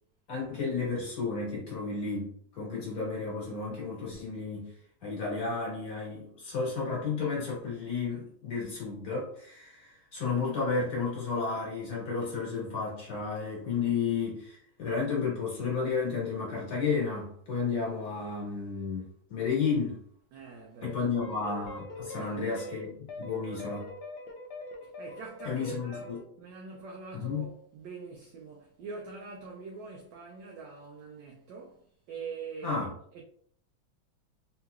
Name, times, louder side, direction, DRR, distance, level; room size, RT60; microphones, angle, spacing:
voice 1, 0.3-4.7 5.0-20.0 20.8-23.9 25.4-26.2 27.1-27.5 32.6-32.9, left 5 dB, 50° left, 1.6 m, -32 dB
voice 2, 20.3-21.1 22.1-22.6 23.5-23.7 24.8-26.1 26.4-32.8 33.1-33.2, right 5 dB, 75° right, 1.2 m, -44 dB
sound 1, 21.2-26.2, left 2 dB, 70° left, 1.1 m, -43 dB
3.6 x 2.9 x 2.3 m
omnidirectional pair, 2.1 m